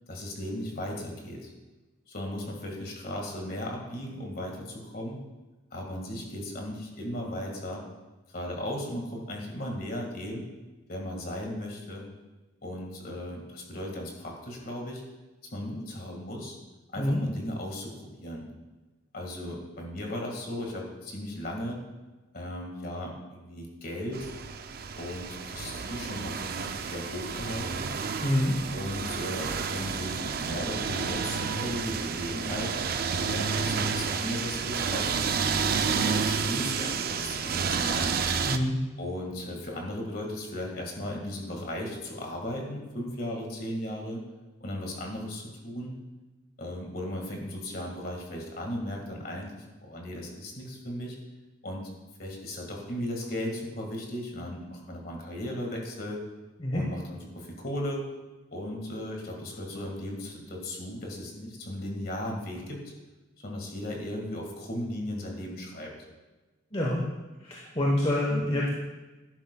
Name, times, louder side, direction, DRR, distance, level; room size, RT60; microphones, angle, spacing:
voice 1, 0.1-1.5 2.1-5.2 5.7-7.8 8.3-10.4 10.9-12.0 12.6-15.0 15.5-16.6 16.9-18.5 19.1-21.8 22.3-24.3 25.0-28.0 28.7-32.7 33.2-35.2 35.8-38.1 39.0-44.2 44.6-45.9 46.6-51.2 51.6-51.9 52.2-56.2 56.7-58.0 58.5-62.8 63.4-65.9, left 1 dB, 45° left, 1 dB, 1.8 m, -36 dB
sound 1, 24.1-38.6, right 5 dB, 45° right, 0.4 m, -30 dB
voice 2, 28.2-28.5 38.4-38.7 56.6-56.8 66.7-67.0 67.4-68.7, left 1 dB, 25° left, -3 dB, 1.1 m, -26 dB
11.5 x 10.5 x 2.3 m, 1.2 s
head